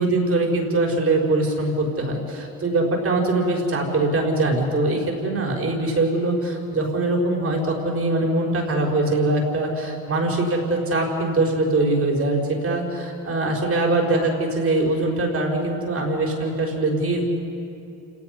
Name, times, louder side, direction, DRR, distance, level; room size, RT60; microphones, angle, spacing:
voice 1, 0.0-17.2, right 2 dB, 40° right, 0 dB, 5.5 m, -22 dB
29.0 x 19.0 x 5.7 m, 2.8 s
supercardioid pair, 80°, 36 cm